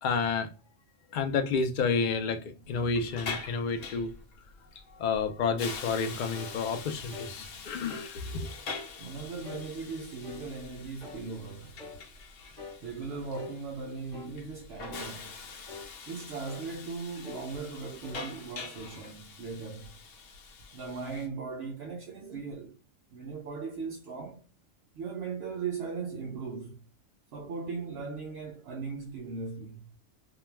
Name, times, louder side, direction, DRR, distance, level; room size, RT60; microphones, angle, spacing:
voice 1, 0.0-0.5 1.1-4.1 4.9-8.5, left 5 dB, 65° left, 0.5 m, -30 dB
Hiss, 2.7-21.3, left 4 dB, 85° left, 1.0 m, -44 dB
sound 1, 6.3-6.6 7.1-7.3 7.9-8.1 8.6-8.9 9.4-9.7 10.2-10.5 11.0-11.2 11.8-12.0 12.6-12.8 13.3-13.6 14.1-14.3 14.9-15.1 15.7-15.9 16.4-16.7 17.2-17.5 18.0-18.2, left 4 dB, 5° left, 0.8 m, -44 dB
voice 2, 9.0-11.8 12.8-15.3 16.1-19.9 20.7-22.7 23.1-24.4 24.9-26.8 27.3-29.9, right 4 dB, 65° right, 0.7 m, -38 dB
2.2 x 2.2 x 3.1 m
omnidirectional pair, 1.3 m